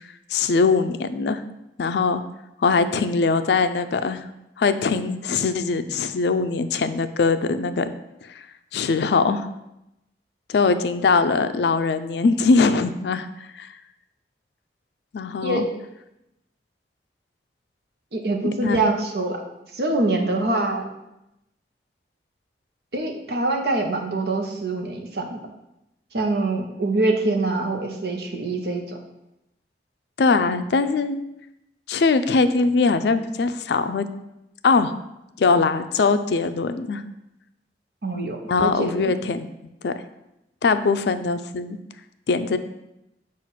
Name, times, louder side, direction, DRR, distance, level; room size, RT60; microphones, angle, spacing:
voice 1, 0.3-1.4 1.8-2.2 2.6-4.2 4.6-7.9 8.7-9.5 10.5-13.3 13.6-13.7 15.1-15.6 18.6-18.8 30.2-31.2 31.9-34.1 34.6-34.9 35.4-37.0 38.5-39.5 39.8-39.9 40.6-41.8 42.3-42.6, left 4 dB, 70° left, 10 dB, 0.4 m, -21 dB
voice 2, 18.1-19.4 19.7-20.9 22.9-25.4 26.1-29.0 38.0-39.2, right 2 dB, 60° right, 2 dB, 0.9 m, -24 dB
7.3 x 2.5 x 5.7 m, 0.89 s
head